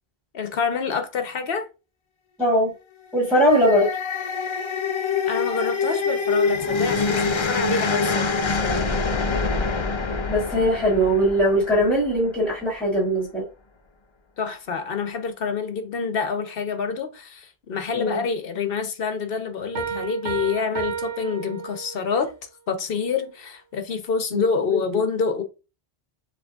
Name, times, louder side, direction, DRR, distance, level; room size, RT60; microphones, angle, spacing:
voice 1, 0.3-1.7 5.3-8.9 14.4-22.3 22.7-25.4, left 5 dB, 65° left, 1.1 m, -27 dB
voice 2, 2.4-2.7 3.1-3.9 10.3-13.5 17.9-18.2 24.3-25.0, equal, ahead, 2.1 m, -21 dB
sound 1, 3.2-12.5, left 4 dB, 45° left, 0.4 m, -25 dB
Piano, 19.8-22.2, right 7 dB, 80° right, 1.1 m, -31 dB
7.0 x 3.1 x 2.4 m
omnidirectional pair, 1.1 m